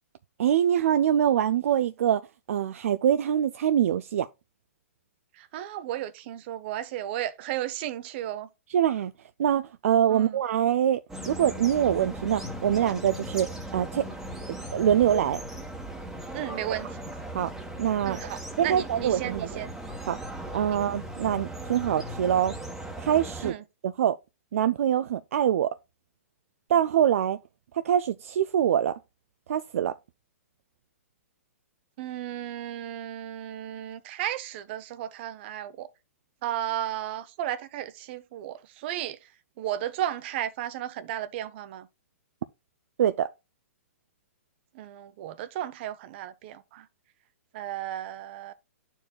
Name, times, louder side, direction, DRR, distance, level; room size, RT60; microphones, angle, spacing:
voice 1, 0.4-2.2 2.5-4.3 8.7-9.1 9.4-11.0 11.3-14.1 14.7-15.4 17.3-17.5 17.8-18.2 18.6-19.5 20.1-20.2 20.5-22.5 23.0-23.5 23.8-24.2 24.5-25.7 26.7-27.4 27.8-28.9 29.5-29.9 43.0-43.3, right 10 dB, 65° right, 0.4 m, -24 dB
voice 2, 5.4-8.5 10.1-10.4 16.3-17.0 18.0-19.7 20.7-20.8 23.4-23.6 32.0-35.9 36.4-39.2 39.6-41.9 44.7-46.9 47.5-48.5, right 12 dB, 45° right, 0.8 m, -34 dB
sound 1, 11.1-23.5, right 1 dB, 5° right, 1.3 m, -38 dB
11.5 x 4.6 x 2.3 m
hypercardioid pair, 130°, 8 cm